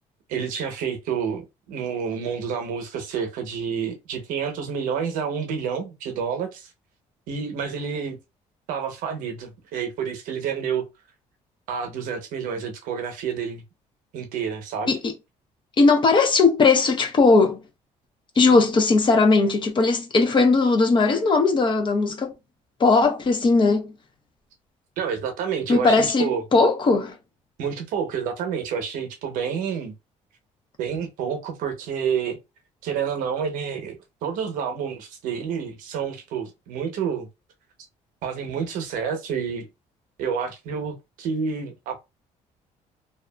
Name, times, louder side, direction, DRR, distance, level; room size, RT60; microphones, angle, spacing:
voice 1, 0.3-6.7 7.3-8.2 8.7-10.9 11.7-13.6 14.1-14.9 25.0-26.4 27.6-29.9 30.8-32.4 32.8-34.0 34.2-37.3 38.2-39.7 40.2-42.0, right 7 dB, 85° right, 0.8 m, -29 dB
voice 2, 15.8-17.6 18.4-22.3 22.8-23.9 25.7-27.1, left 3 dB, 35° left, 0.8 m, -18 dB
2.8 x 2.4 x 2.2 m
cardioid pair, 105°, 14 cm